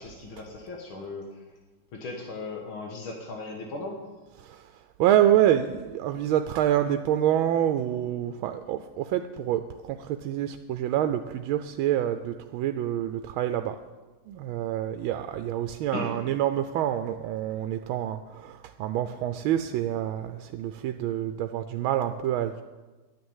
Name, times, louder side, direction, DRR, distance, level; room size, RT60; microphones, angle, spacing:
voice 1, 0.0-1.4 1.9-4.0 15.9-16.2, left 3 dB, 85° left, 1 dB, 2.2 m, -37 dB
voice 2, 4.4-4.7 5.0-13.8 14.3-22.6, right 11 dB, 90° right, 8 dB, 1.4 m, -27 dB
11.0 x 9.4 x 7.2 m, 1.2 s
omnidirectional pair, 2.2 m